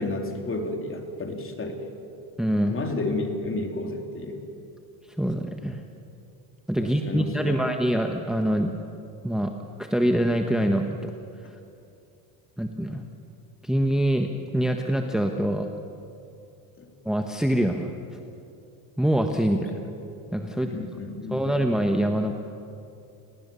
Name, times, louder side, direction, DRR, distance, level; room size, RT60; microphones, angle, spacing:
voice 1, 0.0-1.8 2.7-4.4 6.8-7.6 11.4-11.5 16.8-16.9 19.5-19.8 20.6-21.5, left 2 dB, 30° left, 4 dB, 3.4 m, -31 dB
voice 2, 2.4-2.8 5.2-5.8 6.7-8.7 9.2-9.5 9.8-10.9 12.6-13.0 13.6-15.7 17.0-17.9 19.0-19.7 20.3-20.7 21.3-22.3, right 1 dB, ahead, 4 dB, 1.3 m, -24 dB
29.5 x 18.0 x 7.0 m, 2.6 s
supercardioid pair, 100°, 45 cm